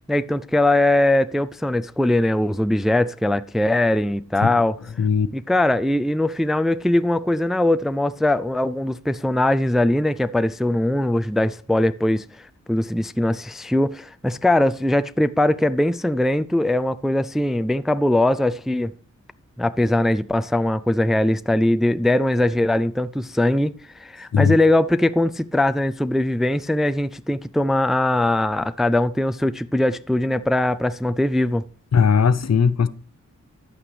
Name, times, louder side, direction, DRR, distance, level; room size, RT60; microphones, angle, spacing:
voice 1, 0.1-4.8 5.3-18.9 19.6-23.7 24.0-31.6, left 1 dB, ahead, 0.4 m, -21 dB
voice 2, 31.9-32.9, left 6 dB, 60° left, 0.7 m, -18 dB
11.0 x 8.6 x 3.4 m
wide cardioid pair, 75°, 29 cm